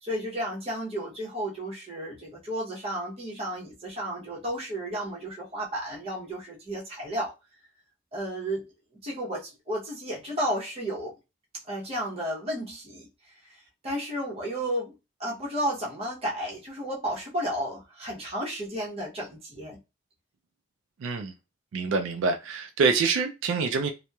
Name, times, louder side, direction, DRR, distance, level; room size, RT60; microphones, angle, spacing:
voice 1, 0.0-7.3 8.1-8.7 9.0-11.1 11.6-13.1 13.8-14.9 15.2-19.8, equal, 30° right, 0.8 m, -32 dB
voice 2, 21.0-21.3 21.7-23.9, right 4 dB, 90° right, 0.3 m, -26 dB
2.8 x 2.0 x 2.2 m
head